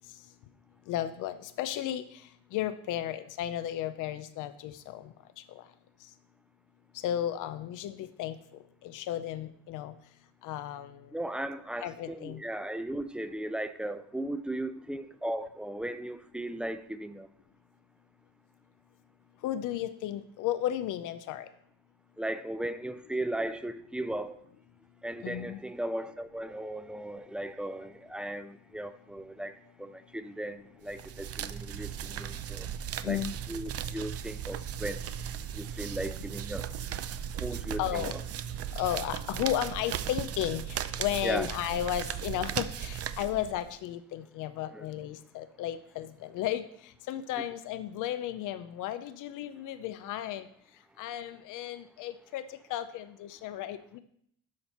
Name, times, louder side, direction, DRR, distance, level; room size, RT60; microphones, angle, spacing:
voice 1, 0.9-2.0 2.5-5.1 5.6-5.7 7.0-8.4 8.8-9.9 10.4-11.1 11.8-12.4 19.4-21.5 25.2-25.6 33.0-33.3 37.8-38.1 38.7-46.6 47.1-50.5 51.0-54.0, left 12 dB, 90° left, 0.5 m, -34 dB
voice 2, 11.1-17.3 22.2-24.4 25.0-29.5 29.8-32.7 33.0-33.2 33.5-35.0 35.5-36.7 37.4-38.2 41.2-41.5 44.7-44.9, right 1 dB, 5° right, 0.5 m, -36 dB
sound 1, 30.9-43.7, right 9 dB, 50° right, 0.5 m, -37 dB
12.5 x 4.4 x 4.2 m
cardioid pair, 90°, 30 cm